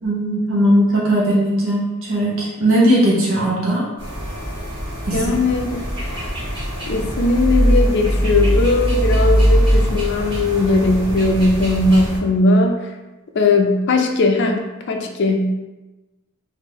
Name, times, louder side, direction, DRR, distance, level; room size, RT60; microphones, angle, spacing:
voice 1, 0.0-3.8 5.1-5.3, right 1 dB, 65° right, -5 dB, 0.7 m, -18 dB
sound 1, 4.0-12.2, equal, 25° right, 1.3 m, -21 dB
voice 2, 5.1-5.8 6.9-12.7 13.3-15.5, left 2 dB, 55° left, 3 dB, 0.4 m, -18 dB
2.9 x 2.5 x 3.5 m, 1.1 s
head